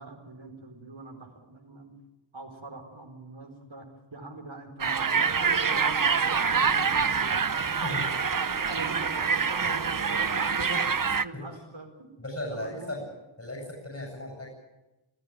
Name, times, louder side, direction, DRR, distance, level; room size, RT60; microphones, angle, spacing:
voice 1, 0.0-1.9 2.3-7.5 8.3-12.1 12.5-13.0, right 2 dB, 65° right, 2 dB, 4.6 m, -42 dB
sound 1, 4.8-11.2, right 5 dB, 40° right, 0.8 m, -26 dB
voice 2, 7.8-8.4 11.3-11.4 12.2-13.0 13.4-14.5, left 1 dB, 30° left, 0 dB, 7.6 m, -36 dB
26.5 x 14.5 x 9.2 m, 1.0 s
wide cardioid pair, 40°, 48 cm